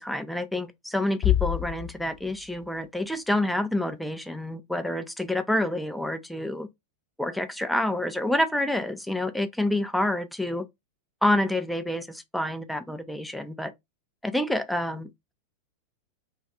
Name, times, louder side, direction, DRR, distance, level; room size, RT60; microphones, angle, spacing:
voice 1, 0.0-6.7 7.2-10.7 11.2-13.7 14.2-15.3, left 1 dB, ahead, 0.4 m, -28 dB
sound 1, 1.2-3.2, left 13 dB, 30° left, 0.7 m, -28 dB
2.3 x 2.3 x 3.2 m
figure-of-eight pair, 90°, 0 cm